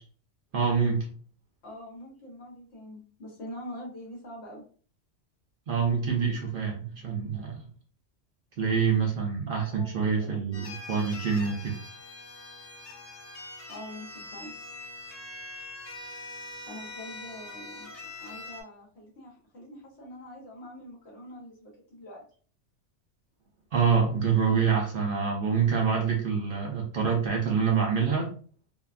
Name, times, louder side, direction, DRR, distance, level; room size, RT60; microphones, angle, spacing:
voice 1, 0.5-1.1 5.7-7.7 8.6-11.8 23.7-28.3, right 6 dB, 60° right, 0 dB, 0.6 m, -26 dB
voice 2, 1.6-4.6 9.4-9.9 10.2-10.4 13.7-14.5 16.6-17.9 18.2-22.2, left 1 dB, 65° left, -3 dB, 1.3 m, -44 dB
sound 1, 10.5-18.6, left 2 dB, 50° left, 0.8 m, -43 dB
2.7 x 2.2 x 2.4 m, 0.43 s
omnidirectional pair, 1.2 m